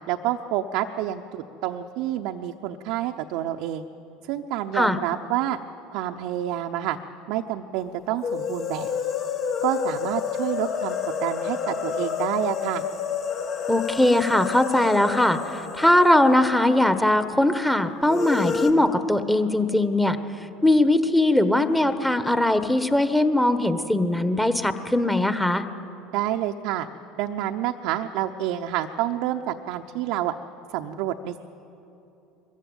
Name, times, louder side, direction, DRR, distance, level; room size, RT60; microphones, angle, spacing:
voice 1, 0.1-3.8 4.3-5.6 5.9-7.0 7.3-8.9 9.6-12.8 26.1-26.9 27.2-30.3 30.7-31.4, right 12 dB, 65° right, 4 dB, 0.8 m, -28 dB
sound 1, 8.2-17.1 17.3-17.4 18.1-18.7, left 6 dB, 50° left, 1.9 m, -29 dB
voice 2, 13.7-20.2 20.6-25.6, left 1 dB, 5° left, 9 dB, 1.4 m, -20 dB
21.5 x 15.0 x 9.1 m, 2.9 s
hypercardioid pair, 80°, 0 cm